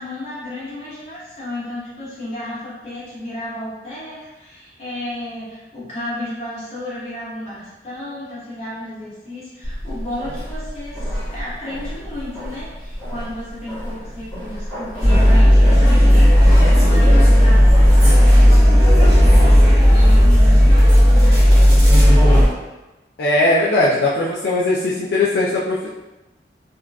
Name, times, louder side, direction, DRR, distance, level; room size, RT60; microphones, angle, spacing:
voice 1, 0.0-18.8 19.2-21.4, left 1 dB, 35° left, -10 dB, 1.3 m, -32 dB
sound 1, 9.6-20.3, equal, 10° left, 1.2 m, -30 dB
sound 2, 15.0-22.5, equal, 60° right, 0.9 m, -11 dB
voice 2, 23.2-25.9, left 2 dB, 70° left, -6 dB, 0.4 m, -19 dB
3.7 x 2.3 x 2.3 m, 1.1 s
head